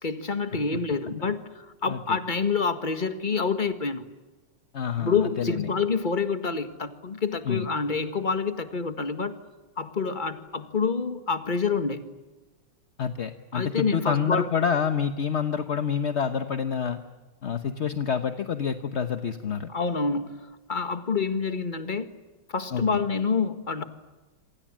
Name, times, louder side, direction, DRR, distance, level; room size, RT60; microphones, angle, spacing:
voice 1, 0.0-4.1 5.0-9.3 9.8-12.0 13.5-14.5 19.7-22.1 22.5-23.8, left 5 dB, 25° left, 9 dB, 1.6 m, -27 dB
voice 2, 1.9-2.2 4.7-5.7 7.4-7.7 13.0-17.0 17.4-19.7 22.7-23.0, left 7 dB, 45° left, 8 dB, 1.0 m, -28 dB
27.5 x 25.5 x 7.5 m, 1.2 s
omnidirectional pair, 2.3 m